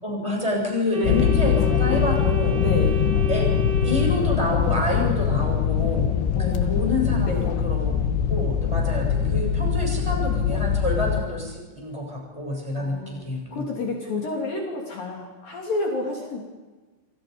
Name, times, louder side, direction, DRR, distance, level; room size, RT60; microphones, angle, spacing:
voice 1, 0.0-2.6 3.3-3.4 3.8-6.1 6.4-7.9 8.3-13.7, left 1 dB, 5° left, 0 dB, 7.2 m, -28 dB
Organ, 0.9-4.8, right 1 dB, 45° right, 5.3 m, -31 dB
sound 1, 1.0-11.2, left 8 dB, 75° left, 3.5 m, -23 dB
voice 2, 2.6-3.0 6.3-7.0 7.2-7.5 12.8-13.2 13.5-16.4, left 2 dB, 50° left, -1 dB, 4.5 m, -30 dB
29.5 x 27.5 x 5.4 m, 1.2 s
omnidirectional pair, 5.3 m